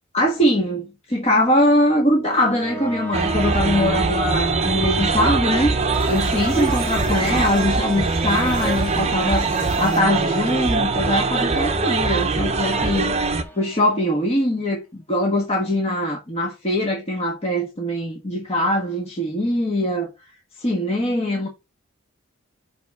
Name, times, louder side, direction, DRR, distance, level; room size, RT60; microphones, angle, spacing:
voice 1, 0.1-5.7 6.1-13.1 13.5-20.1 20.6-21.5, left 1 dB, 30° left, 1.3 m, -22 dB
sound 1, 1.2-14.2, right 2 dB, 10° left, 1.9 m, -36 dB
sound 2, 3.1-13.4, right 3 dB, 35° right, 0.8 m, -22 dB
sound 3, 5.9-10.7, equal, 55° left, 4.1 m, -35 dB
5.5 x 4.8 x 5.3 m
head